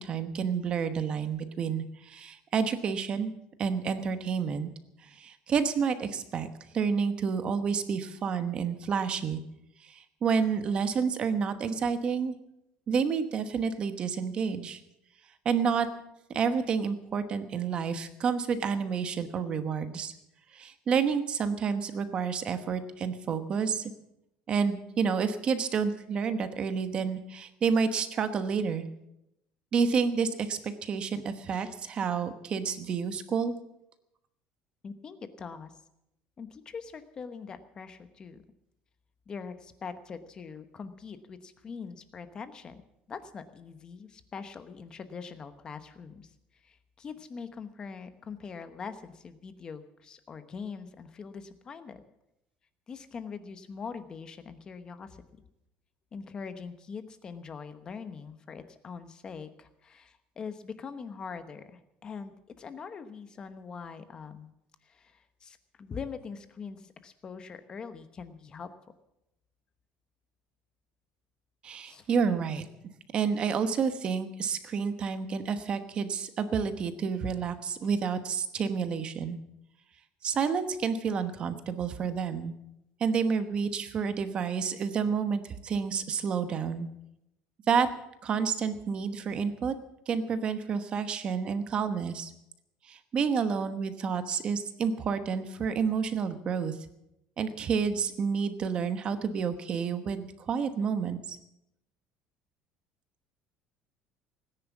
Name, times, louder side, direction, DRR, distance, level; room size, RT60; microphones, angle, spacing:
voice 1, 0.0-4.7 5.1-6.5 6.7-9.4 9.8-12.3 12.9-14.8 15.4-15.9 16.3-20.1 20.5-23.9 24.5-28.8 29.7-33.5 71.6-72.6 73.1-79.4 80.2-82.5 83.0-86.9 87.7-87.9 88.2-89.7 90.1-92.3 92.9-96.8 97.4-101.4, right 6 dB, 30° right, 10 dB, 1.1 m, -29 dB
voice 2, 34.8-35.7 36.4-38.4 39.3-42.8 43.1-46.3 46.6-52.0 52.9-55.2 56.1-64.5 64.8-68.7 71.9-72.1, left 5 dB, 25° left, 10 dB, 1.0 m, -43 dB
18.0 x 10.0 x 7.2 m, 0.85 s
cardioid pair, 175°, 3 cm